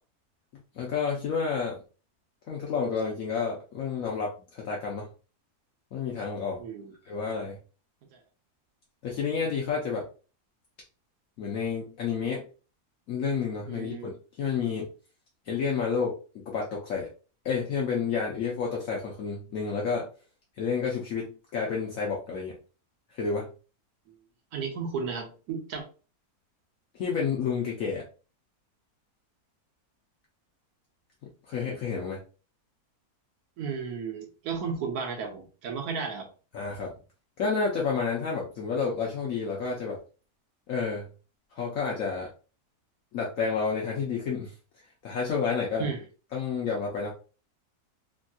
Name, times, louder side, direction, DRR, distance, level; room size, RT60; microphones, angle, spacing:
voice 1, 0.7-1.8 2.5-5.1 5.9-6.6 7.1-7.6 9.0-10.0 11.4-12.4 13.1-14.1 14.4-14.9 15.5-17.1 17.4-20.1 20.6-22.6 23.1-23.5 27.0-28.0 31.5-32.2 36.5-36.9 37.4-40.0 40.7-41.1 41.5-42.3 43.1-44.5 45.0-45.9 46.3-47.1, left 5 dB, 65° left, -2 dB, 1.0 m, -30 dB
voice 2, 6.6-6.9 8.1-8.2 13.7-14.1 24.5-25.8 33.6-36.3 45.8-46.0, right 5 dB, 75° right, 3 dB, 1.3 m, -34 dB
3.4 x 2.7 x 2.3 m, 0.35 s
omnidirectional pair, 1.6 m